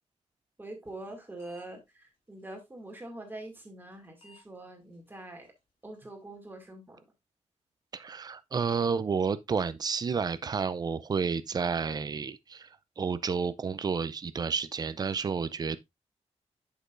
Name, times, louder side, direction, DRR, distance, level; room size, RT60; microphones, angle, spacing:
voice 1, 0.6-5.5 5.8-7.0, right 2 dB, 15° right, 2.3 m, -44 dB
sound 1, 0.9-1.1 1.4-1.6 1.9-2.0 2.9-3.0 3.9-4.0 4.2-4.4 4.9-5.0 5.4-5.5 5.9-6.0, left 2 dB, 50° left, 3.0 m, -57 dB
voice 2, 7.9-12.7 13.0-15.8, right 5 dB, 35° right, 0.5 m, -30 dB
7.9 x 6.6 x 2.5 m
wide cardioid pair, 155°, 12 cm